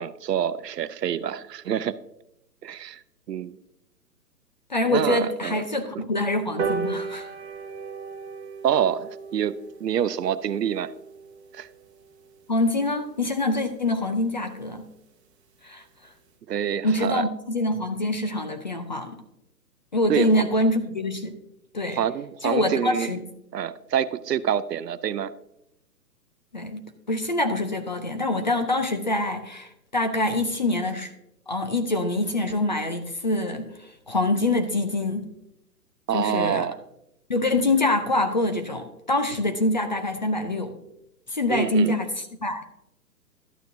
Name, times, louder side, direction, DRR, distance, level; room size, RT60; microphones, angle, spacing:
voice 1, 0.0-2.0 2.6-3.0 3.3-3.6 4.9-5.6 5.9-6.0 8.6-10.9 11.5-11.7 16.5-17.3 20.1-20.4 21.9-23.1 23.5-25.3 36.1-36.8 41.5-41.9, right 9 dB, 75° right, 15 dB, 0.6 m, -27 dB
voice 2, 4.7-7.3 12.5-14.9 15.6-15.8 16.8-19.2 19.9-21.4 21.7-22.0 22.4-23.2 26.5-26.8 27.1-31.1 31.5-35.3 36.1-36.7 37.3-40.8 41.3-42.6, left 2 dB, 30° left, 7 dB, 0.4 m, -25 dB
sound 1, 6.6-13.3 13.8-13.9 14.2-14.3 14.6-14.7 14.9-15.0 15.3-15.6 16.0-16.1, right 5 dB, 40° right, 1.1 m, -36 dB
12.0 x 8.9 x 2.6 m, 0.83 s
figure-of-eight pair, 130°, 50 cm